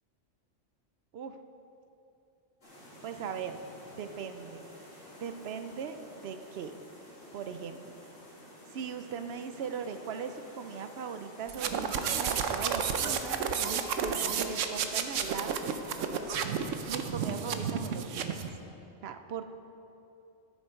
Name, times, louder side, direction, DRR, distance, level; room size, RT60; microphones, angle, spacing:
sound 1, 2.6-17.6, left 1 dB, 80° left, 2.9 m, -52 dB
voice 1, 3.0-3.6 4.0-4.6 5.2-6.8 7.3-7.8 8.7-13.4 13.7-15.6 16.9-18.4 19.0-19.4, right 6 dB, 60° right, 8 dB, 0.8 m, -39 dB
sound 2, 11.5-18.5, right 7 dB, 80° right, 1.1 m, -31 dB
11.5 x 10.0 x 4.5 m, 2.8 s
omnidirectional pair, 1.3 m